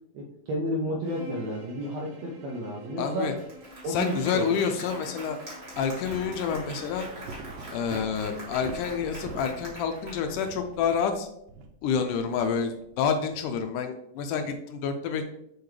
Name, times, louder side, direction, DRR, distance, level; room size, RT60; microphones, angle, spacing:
voice 1, 0.1-3.4 3.8-4.6, equal, 75° right, -1 dB, 1.6 m, -32 dB
Bowed string instrument, 1.0-7.0, left 1 dB, 55° right, 2.1 m, -49 dB
voice 2, 3.0-3.3 3.9-5.4 5.8-7.1 7.7-11.3 11.8-15.2, left 6 dB, 80° left, 6 dB, 2.0 m, -28 dB
Applause, 3.0-3.1 3.4-10.9, right 1 dB, 25° right, 1.3 m, -43 dB
sound 1, 5.7-13.7, right 3 dB, 90° right, 2.4 m, -44 dB
7.0 x 4.5 x 3.2 m, 0.77 s
omnidirectional pair, 3.9 m